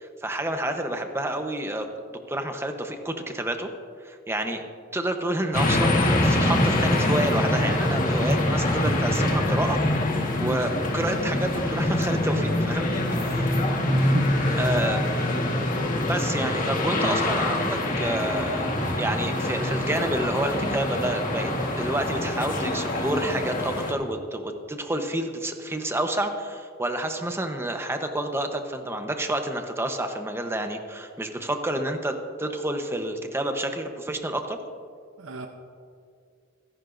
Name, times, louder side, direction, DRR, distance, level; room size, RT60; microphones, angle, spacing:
voice 1, 0.0-1.9 2.3-3.7 4.0-4.6 4.9-9.8 10.4-13.5 14.6-15.0 16.0-34.6, right 1 dB, 15° right, 5 dB, 0.9 m, -29 dB
sound 1, 5.5-23.9, left 1 dB, 45° left, 1.6 m, -25 dB
voice 2, 13.8-14.7 35.2-35.5, right 3 dB, 80° right, 5 dB, 0.7 m, -35 dB
25.5 x 10.5 x 2.6 m, 2.2 s
head